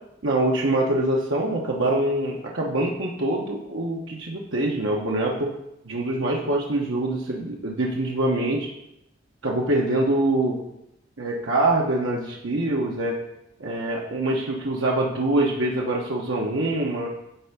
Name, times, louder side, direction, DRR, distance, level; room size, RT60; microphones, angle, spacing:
voice 1, 0.2-5.5 5.8-8.7 9.4-10.6 11.2-13.2 13.6-17.1, right 1 dB, 85° right, -2 dB, 1.0 m, -24 dB
10.0 x 3.5 x 6.6 m, 0.84 s
head